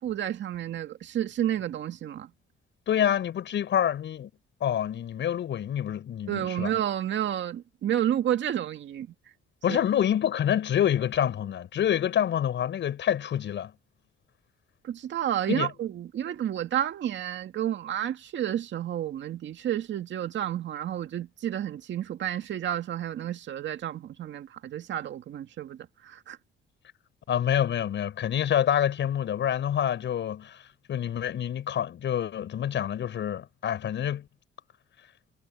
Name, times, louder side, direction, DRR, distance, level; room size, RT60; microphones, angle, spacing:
voice 1, 0.0-2.3 6.3-9.1 9.7-9.8 14.8-25.8 26.0-26.4, right 11 dB, 70° right, 2.2 m, -30 dB
voice 2, 2.9-4.3 4.6-6.8 9.6-13.7 15.5-15.7 27.3-30.6 30.9-34.3, left 10 dB, 65° left, 7.1 m, -27 dB
cardioid pair, 90°, 20 cm